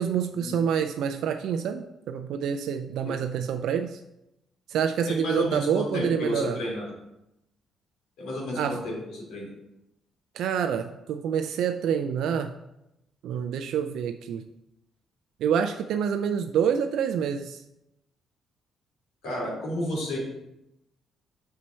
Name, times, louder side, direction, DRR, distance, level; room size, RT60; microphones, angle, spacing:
voice 1, 0.0-4.0 4.7-6.6 8.6-8.8 10.3-12.5 13.2-14.5 15.4-17.6, right 8 dB, 80° right, 7 dB, 0.4 m, -27 dB
voice 2, 5.1-6.9 8.2-9.5 19.2-20.2, left 1 dB, 80° left, -3 dB, 2.9 m, -31 dB
5.6 x 4.3 x 6.2 m, 0.87 s
cardioid pair, 90°, 0 cm